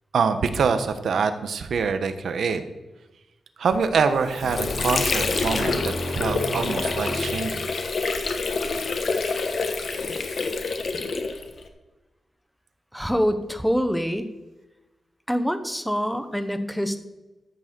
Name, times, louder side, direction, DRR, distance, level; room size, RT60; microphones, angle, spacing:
voice 1, 0.1-2.6 3.6-7.6, right 5 dB, 70° right, 9 dB, 1.1 m, -25 dB
Water / Sink (filling or washing), 4.0-11.7, left 4 dB, 50° left, 1.2 m, -27 dB
sound 1, 4.4-7.7, left 1 dB, 85° left, 2.3 m, -32 dB
voice 2, 12.9-14.3 15.3-17.0, equal, ahead, 9 dB, 0.9 m, -25 dB
14.0 x 6.3 x 6.8 m, 1.1 s
wide cardioid pair, 160°, 0 cm